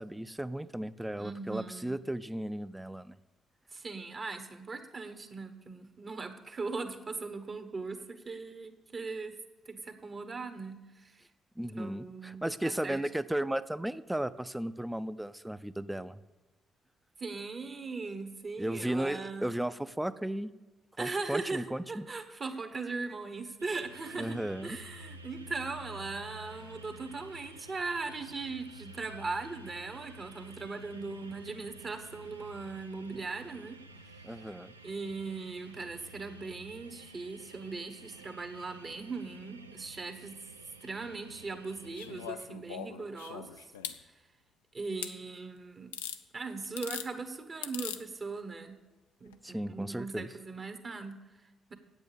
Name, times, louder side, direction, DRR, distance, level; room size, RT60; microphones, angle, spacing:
voice 1, 0.0-3.2 11.6-16.2 18.6-20.5 21.0-22.1 24.2-24.8 34.2-34.7 49.4-50.3, right 1 dB, 10° right, 14 dB, 0.5 m, -35 dB
voice 2, 1.2-2.0 3.7-9.4 9.7-11.2 11.8-13.0 17.2-19.5 21.0-33.8 34.8-40.4 40.8-43.5 44.7-45.9 46.3-48.8 49.2-51.7, right 4 dB, 40° right, 7 dB, 1.2 m, -39 dB
sound 1, 23.6-42.3, right 2 dB, 90° right, 0.3 m, -51 dB
sound 2, 41.9-44.0 45.0-45.1 45.9-46.2 46.6-47.1 47.6-48.0 49.3-49.4, left 9 dB, 80° left, 0.4 m, -40 dB
8.6 x 8.2 x 6.9 m, 1.1 s
figure-of-eight pair, 40°, 0 cm